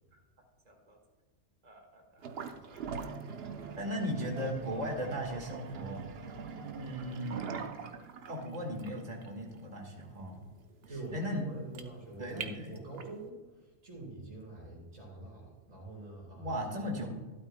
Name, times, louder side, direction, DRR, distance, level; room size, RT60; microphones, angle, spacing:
voice 1, 0.7-1.0 1.6-2.8 3.7-6.0 6.7-7.5 8.3-10.4 10.9-11.4 12.2-12.8 16.4-17.1, equal, 35° right, 1 dB, 1.7 m, -38 dB
sound 1, 2.2-13.2, right 6 dB, 60° right, 0.8 m, -43 dB
voice 2, 10.9-17.0, right 2 dB, 85° right, -3 dB, 3.2 m, -46 dB
12.0 x 12.0 x 2.2 m, 1.3 s
omnidirectional pair, 1.3 m